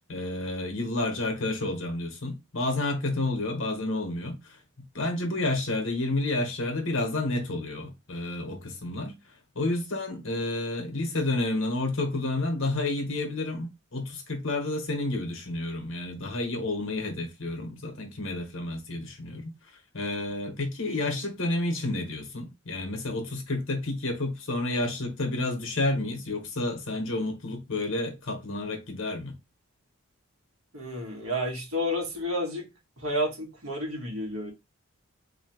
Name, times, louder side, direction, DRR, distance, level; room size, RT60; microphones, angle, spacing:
voice 1, 0.1-19.5 19.9-29.4, left 2 dB, 60° left, 1.1 m, -30 dB
voice 2, 30.7-32.7 33.0-34.5, equal, 70° right, 1.5 m, -30 dB
3.9 x 2.9 x 2.9 m
head